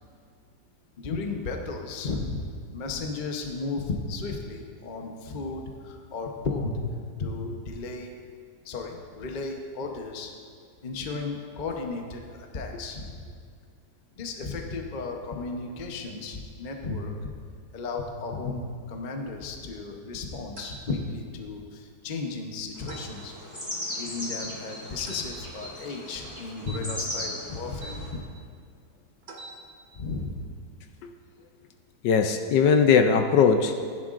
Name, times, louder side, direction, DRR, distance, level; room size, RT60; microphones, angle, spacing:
voice 1, 1.0-6.7 7.2-8.1 8.6-10.3 10.8-13.2 14.2-17.3 17.7-23.3 23.9-28.2 29.9-30.5, left 3 dB, 40° left, 2 dB, 0.6 m, -34 dB
sound 1, 20.6-20.8 22.9-23.1 25.1-25.3 26.6-28.0 29.2-29.6, right 2 dB, 35° right, 0.8 m, -43 dB
sound 2, 22.8-28.1, left 1 dB, 10° left, 1.9 m, -37 dB
voice 2, 32.0-33.8, left 6 dB, 75° left, 6 dB, 1.2 m, -20 dB
15.0 x 10.5 x 2.5 m, 2.1 s
omnidirectional pair, 2.1 m